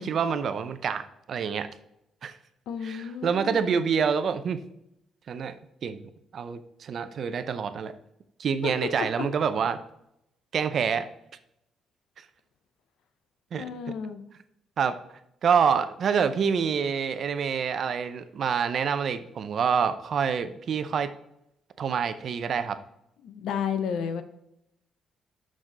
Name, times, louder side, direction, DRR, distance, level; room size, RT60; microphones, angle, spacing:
voice 1, 0.0-1.7 2.2-2.4 2.8-4.6 5.3-5.6 5.8-7.9 8.4-9.8 10.5-11.1 13.5-13.6 14.8-15.0 15.4-21.1 21.8-22.8, right 6 dB, 60° right, 11 dB, 0.6 m, -27 dB
voice 2, 2.7-3.9 8.6-9.3 13.6-14.2 23.2-24.2, left 7 dB, 80° left, 9 dB, 0.7 m, -32 dB
6.3 x 6.2 x 3.9 m, 0.80 s
cardioid pair, 90°, 0 cm